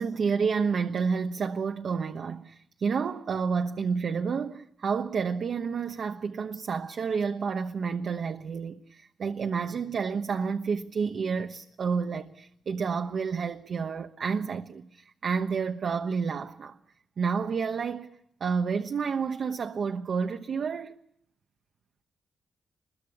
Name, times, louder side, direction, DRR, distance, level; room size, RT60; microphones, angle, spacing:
voice 1, 0.0-16.8 17.2-18.1 18.4-21.0, right 5 dB, 60° right, 1.1 m, -30 dB
25.5 x 22.0 x 8.6 m
cardioid pair, 105°, 0 cm